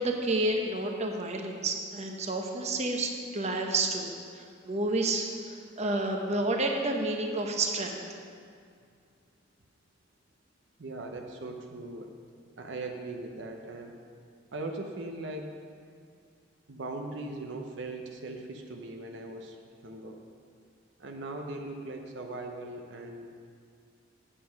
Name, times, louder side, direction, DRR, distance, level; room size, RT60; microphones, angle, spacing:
voice 1, 0.0-5.3 5.8-8.0, right 2 dB, 35° right, 2 dB, 0.9 m, -30 dB
voice 2, 10.8-12.1 12.6-14.0 14.5-15.5 16.7-19.6 19.8-20.2 21.0-23.3, right 2 dB, 70° right, 3 dB, 0.8 m, -39 dB
8.4 x 7.5 x 5.8 m, 2.2 s
head